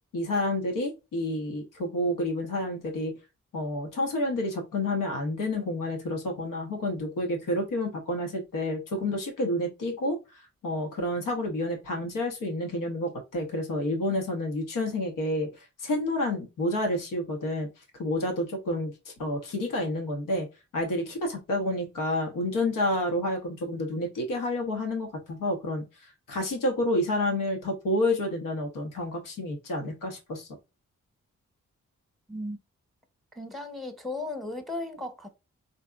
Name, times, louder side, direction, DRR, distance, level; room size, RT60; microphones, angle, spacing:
voice 1, 0.1-3.1 3.5-10.2 10.6-15.5 15.8-17.7 18.0-20.5 20.7-25.8 26.3-30.5, left 1 dB, 85° left, 0.8 m, -29 dB
voice 2, 32.3-32.6 33.3-35.3, left 2 dB, ahead, 0.9 m, -35 dB
3.5 x 2.7 x 2.3 m
cardioid pair, 45°, 31 cm